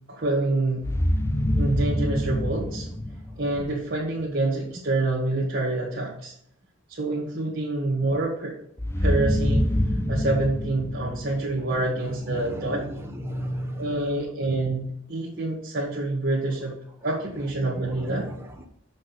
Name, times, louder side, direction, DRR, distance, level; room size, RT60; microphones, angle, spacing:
voice 1, 0.1-0.9 1.6-2.9 3.4-6.3 6.9-8.5 9.0-9.7 10.1-12.8 13.8-16.8 17.0-18.2, right 2 dB, 50° right, -5 dB, 1.7 m, -27 dB
sound 1, 0.8-3.8 8.8-12.0, left 1 dB, 15° left, 0.6 m, -26 dB
voice 2, 11.5-14.1 17.6-18.6, equal, 10° right, 0 dB, 1.1 m, -35 dB
6.5 x 6.3 x 5.9 m, 0.72 s
head